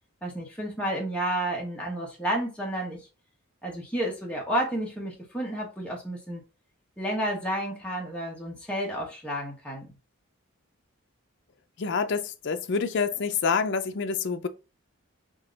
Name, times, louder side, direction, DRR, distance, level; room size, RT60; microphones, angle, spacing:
voice 1, 0.2-3.0 3.6-6.4 7.0-9.9, right 1 dB, 5° left, 1.2 m, -31 dB
voice 2, 11.8-14.5, left 5 dB, 55° left, 0.5 m, -27 dB
3.7 x 2.8 x 3.9 m
head